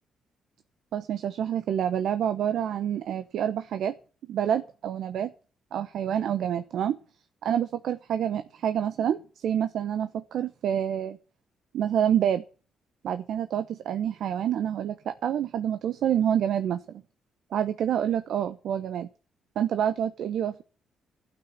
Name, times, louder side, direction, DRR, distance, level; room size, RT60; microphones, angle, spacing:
voice 1, 0.9-3.9 4.3-5.3 5.7-7.0 7.4-11.2 11.7-12.4 13.0-17.0 17.5-19.1 19.6-20.6, right 9 dB, 70° right, 10 dB, 0.9 m, -27 dB
12.5 x 6.2 x 9.4 m, 0.37 s
cardioid pair, 90°, 0 cm